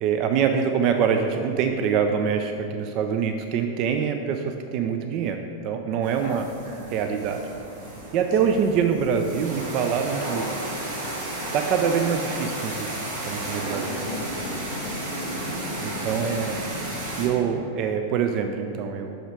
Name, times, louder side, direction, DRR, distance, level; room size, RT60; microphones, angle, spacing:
voice 1, 0.0-6.5 6.9-7.4 8.1-10.5 11.5-13.9 15.8-16.6 17.2-19.2, right 7 dB, 40° right, 5 dB, 0.4 m, -25 dB
sound 1, 6.0-17.3, right 1 dB, 65° right, 1.6 m, -33 dB
voice 2, 13.9-15.2 16.0-16.5, left 6 dB, 50° left, 1 dB, 0.5 m, -39 dB
6.0 x 5.0 x 5.0 m, 2.6 s
figure-of-eight pair, 90°, 0 cm